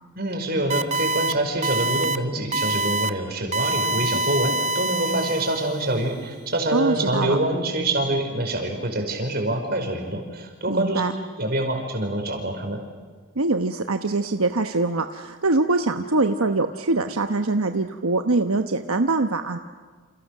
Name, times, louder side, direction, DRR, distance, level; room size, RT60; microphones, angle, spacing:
voice 1, 0.2-11.0 11.4-12.8, right 1 dB, 45° right, 3 dB, 5.2 m, -25 dB
sound 1, 0.7-1.3 1.6-2.2 2.5-3.1 3.5-5.8, right 2 dB, 30° right, 0.9 m, -25 dB
voice 2, 6.7-7.4 10.7-11.1 13.4-19.6, right 3 dB, 80° right, 7 dB, 1.1 m, -23 dB
30.0 x 28.5 x 6.7 m, 1.5 s
head